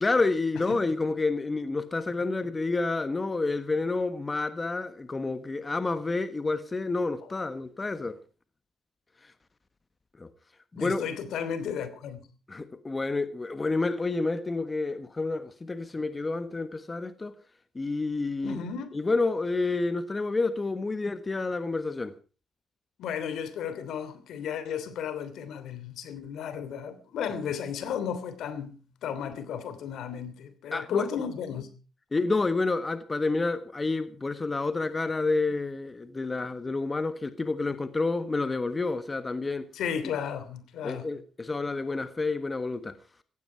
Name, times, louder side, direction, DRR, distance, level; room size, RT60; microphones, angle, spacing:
voice 1, 0.0-8.2 10.2-10.3 10.7-11.0 12.5-17.3 17.7-18.6 18.9-22.1 30.7-31.0 32.1-39.7 40.8-42.9, left 3 dB, 25° left, 1.4 m, -29 dB
voice 2, 10.8-12.2 18.4-19.0 23.0-31.7 39.7-41.1, left 7 dB, 75° left, 3.0 m, -34 dB
15.5 x 15.5 x 4.6 m
cardioid pair, 90°, 0 cm